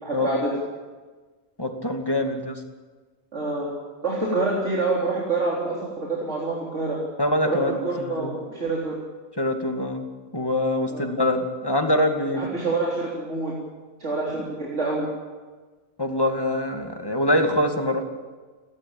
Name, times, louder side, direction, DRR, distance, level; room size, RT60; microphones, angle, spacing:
voice 1, 0.0-0.5 3.3-3.7 4.0-7.0 7.4-9.0 10.9-11.1 12.3-13.5 14.0-15.1, right 3 dB, 80° right, -4 dB, 4.0 m, -27 dB
voice 2, 1.6-2.6 7.2-8.3 9.4-10.1 10.3-12.4 16.0-18.0, left 1 dB, 20° left, 3 dB, 2.4 m, -24 dB
30.0 x 13.0 x 8.9 m, 1.4 s
omnidirectional pair, 1.2 m